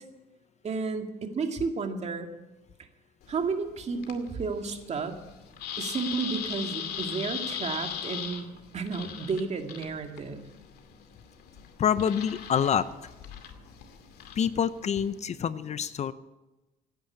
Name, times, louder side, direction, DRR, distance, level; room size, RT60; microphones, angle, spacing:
voice 1, 0.6-2.3 3.3-5.2 5.8-8.5 8.7-10.4, right 4 dB, 40° right, 5 dB, 2.2 m, -32 dB
sound 1, 3.2-15.2, left 9 dB, 70° left, 2.4 m, -40 dB
voice 2, 11.8-12.9 14.4-16.1, left 8 dB, 40° left, 15 dB, 0.7 m, -26 dB
16.5 x 9.9 x 8.5 m, 1.1 s
cardioid pair, 110°, 17 cm